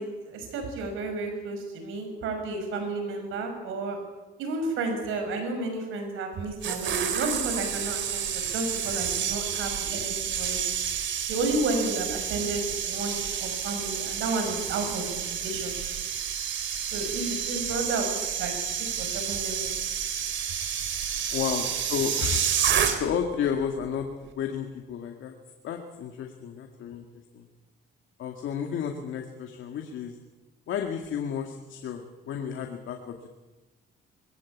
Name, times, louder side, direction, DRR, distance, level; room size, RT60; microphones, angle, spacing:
voice 1, 0.0-4.0 4.4-10.6 11.3-15.7 16.9-18.5 19.0-19.8, right 3 dB, 85° right, 5 dB, 5.9 m, -32 dB
sound 1, 6.4-23.3 23.6-23.9, right 8 dB, 70° right, 2.8 m, -30 dB
voice 2, 21.3-22.4 23.0-24.1 24.3-25.3 25.6-27.0 27.3-27.5 28.2-30.2 30.7-33.3, left 8 dB, 80° left, 3 dB, 2.0 m, -32 dB
21.5 x 16.5 x 8.5 m, 1.2 s
cardioid pair, 90°, 20 cm